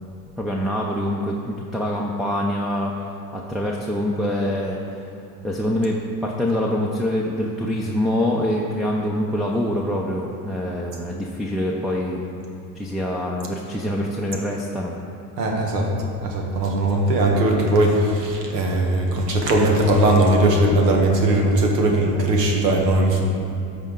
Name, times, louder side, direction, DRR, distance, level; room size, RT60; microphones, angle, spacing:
voice 1, 0.4-5.1 5.4-12.2 12.8-15.0, left 1 dB, ahead, -2 dB, 0.5 m, -25 dB
voice 2, 15.4-15.9 16.2-23.2, right 1 dB, 90° right, 0 dB, 1.4 m, -19 dB
13.0 x 4.4 x 3.8 m, 2.8 s
hypercardioid pair, 90°, 47 cm